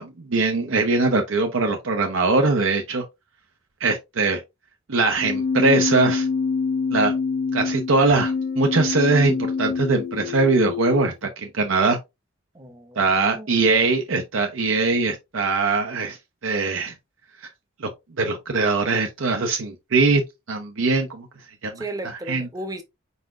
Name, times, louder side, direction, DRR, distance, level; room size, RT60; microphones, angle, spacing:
voice 1, 0.0-3.0 3.8-4.4 4.9-6.3 6.9-7.1 7.5-12.0 13.0-16.2 16.4-16.9 17.8-17.9 18.2-20.2 20.5-21.3 21.6-22.5, right 3 dB, 75° right, 0.7 m, -21 dB
Keyboard (musical), 5.1-11.1, left 5 dB, 35° left, 0.4 m, -26 dB
voice 2, 12.5-13.5 21.8-22.8, right 1 dB, 15° right, 0.7 m, -35 dB
4.7 x 4.1 x 2.5 m
head